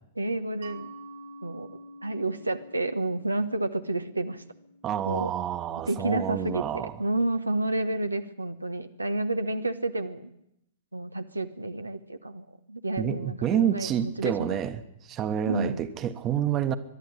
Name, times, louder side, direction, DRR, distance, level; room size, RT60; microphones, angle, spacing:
voice 1, 0.2-0.9 1.4-1.7 2.0-4.4 5.1-5.3 5.9-10.3 10.9-14.6 15.5-15.8, right 2 dB, 85° right, 9 dB, 1.1 m, -30 dB
Mallet percussion, 0.6-6.0, right 1 dB, 55° right, 1.4 m, -48 dB
voice 2, 4.8-6.9 13.0-14.8 15.1-16.8, right 9 dB, 30° right, 11 dB, 1.3 m, -28 dB
22.5 x 12.0 x 9.9 m, 0.80 s
figure-of-eight pair, 105°, 0 cm